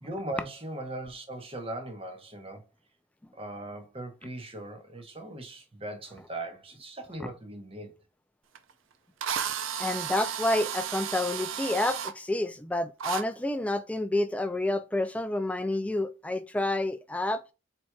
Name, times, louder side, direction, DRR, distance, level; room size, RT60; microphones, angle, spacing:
voice 1, 0.0-2.6 3.3-7.9, right 1 dB, 25° right, 0.9 m, -39 dB
Drill, 8.6-8.7 9.2-12.1 13.0-13.2, right 8 dB, 75° right, 0.5 m, -33 dB
voice 2, 9.8-17.4, left 2 dB, 5° left, 0.3 m, -29 dB
4.5 x 4.2 x 2.3 m
head